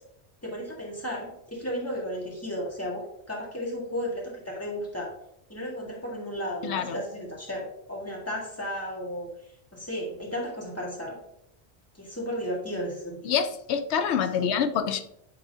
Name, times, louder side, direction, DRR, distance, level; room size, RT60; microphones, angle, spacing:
voice 1, 0.4-5.1 5.5-9.3 9.7-11.2 11.9-13.3 14.4-14.6, equal, 15° left, -3 dB, 1.8 m, -34 dB
voice 2, 6.6-6.9 13.2-15.0, left 7 dB, 85° left, 10 dB, 0.9 m, -26 dB
9.4 x 3.7 x 2.8 m, 0.75 s
omnidirectional pair, 1.1 m